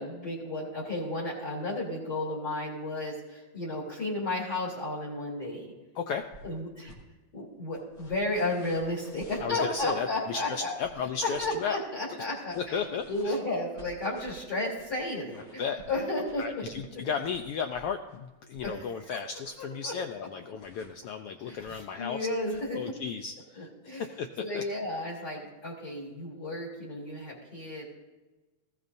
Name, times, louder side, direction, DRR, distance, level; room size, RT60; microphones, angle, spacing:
voice 1, 0.0-5.7 6.4-6.9 7.3-10.7 11.2-12.8 13.1-16.4 18.6-19.2 19.6-19.9 21.4-22.8 23.6-24.1 24.4-27.8, left 2 dB, 35° left, -4 dB, 3.6 m, -33 dB
voice 2, 5.9-6.3 9.4-11.8 12.5-13.4 15.6-15.8 16.4-22.3 22.7-24.3 24.5-24.6, left 6 dB, 85° left, 6 dB, 1.3 m, -34 dB
sound 1, 6.3-6.6 6.8-7.0 7.7-9.9 10.8-11.5 12.5-18.9 19.2-19.7 20.6-20.9 21.5-21.8 22.4-22.6, right 2 dB, 55° left, 4.2 m, -53 dB
20.0 x 15.5 x 2.7 m, 1.1 s
omnidirectional pair, 3.3 m